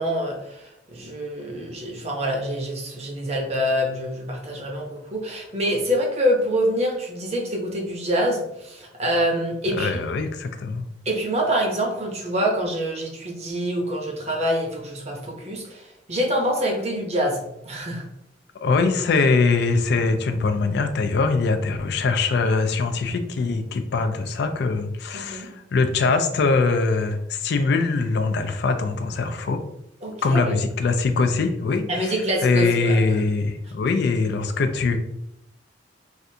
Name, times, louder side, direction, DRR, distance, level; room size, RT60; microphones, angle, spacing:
voice 1, 0.0-9.9 11.1-15.8 16.1-18.0 25.1-25.5 30.0-30.6 31.9-33.0, equal, 40° right, 0 dB, 0.7 m, -25 dB
voice 2, 9.7-10.8 18.6-29.6 30.2-35.0, left 4 dB, 65° left, 7 dB, 0.4 m, -22 dB
3.3 x 2.5 x 2.7 m, 0.80 s
head